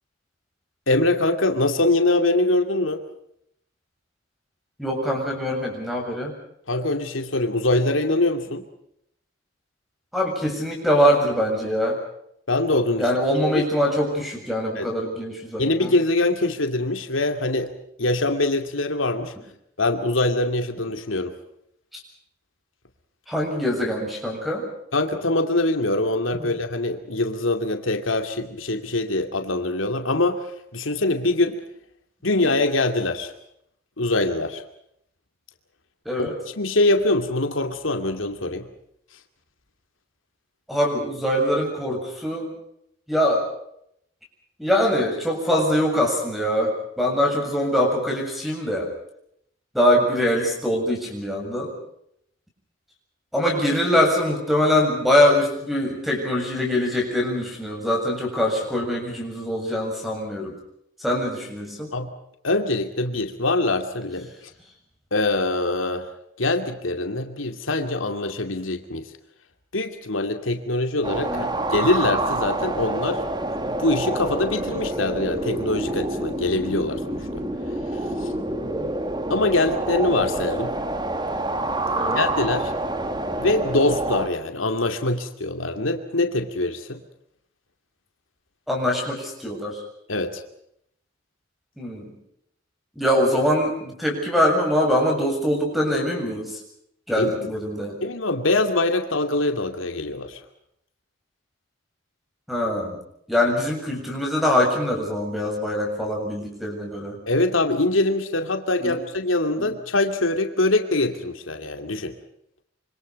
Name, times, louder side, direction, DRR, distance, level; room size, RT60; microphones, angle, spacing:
voice 1, 0.9-3.0 6.7-8.6 12.5-13.1 13.5-13.6 14.8-14.9 15.6-17.7 18.0-19.3 19.8-21.4 24.9-31.6 32.2-33.3 34.0-34.6 36.2-38.7 61.9-62.1 62.4-64.5 65.1-66.1 66.4-69.1 69.7-73.2 73.6-77.4 77.9-78.3 79.3-80.8 82.1-82.7 83.4-87.0 90.1-90.4 97.2-97.5 98.0-100.4 107.3-112.1, left 2 dB, 85° left, 6 dB, 2.5 m, -23 dB
voice 2, 4.8-6.3 10.1-12.0 13.0-15.9 23.3-24.7 26.4-26.5 36.1-36.4 40.7-42.5 43.1-43.5 44.6-48.9 49.7-51.7 53.3-60.6 61.0-61.9 71.3-71.5 78.6-78.9 81.9-82.2 83.2-83.4 88.7-89.8 91.8-92.1 93.0-96.6 97.1-98.0 102.5-103.0 103.3-107.2 108.8-109.0 109.6-109.7, equal, ahead, 1 dB, 7.4 m, -23 dB
sound 1, 71.0-84.3, right 2 dB, 20° right, 1.8 m, -27 dB
26.5 x 26.0 x 5.4 m, 0.73 s
head